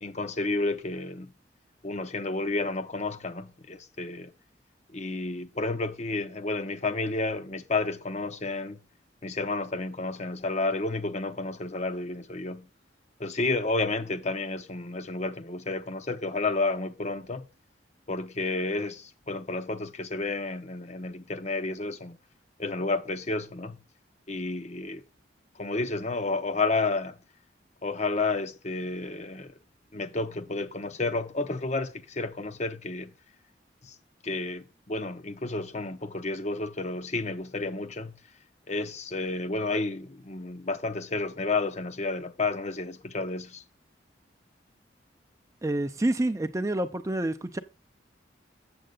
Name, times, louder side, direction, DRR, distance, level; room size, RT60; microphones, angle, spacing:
voice 1, 0.0-1.3 1.8-4.3 4.9-8.8 9.2-12.7 13.2-17.5 18.1-22.2 22.6-23.8 24.3-25.0 25.6-27.2 27.8-29.5 29.9-33.1 33.8-33.9 34.2-38.1 38.7-43.6, left 3 dB, 35° left, 0.7 m, -31 dB
voice 2, 45.6-47.6, right 1 dB, 15° right, 0.4 m, -28 dB
7.8 x 7.6 x 3.7 m
head